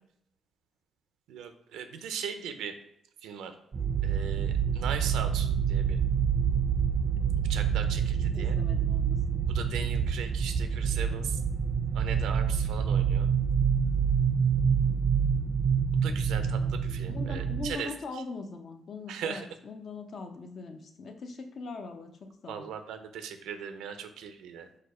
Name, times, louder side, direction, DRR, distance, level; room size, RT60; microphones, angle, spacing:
voice 1, 1.3-2.8 3.2-3.6 4.0-6.0 7.4-8.6 9.5-11.4 11.9-13.3 16.0-18.2 19.1-19.5 22.5-24.7, right 7 dB, 90° right, 8 dB, 0.5 m, -39 dB
sound 1, 3.7-17.7, right 7 dB, 35° right, 0.3 m, -27 dB
voice 2, 8.3-9.5 10.7-11.0 17.1-22.6, left 3 dB, 55° left, 6 dB, 0.6 m, -41 dB
4.3 x 2.4 x 4.8 m, 0.75 s
cardioid pair, 90°, 0 cm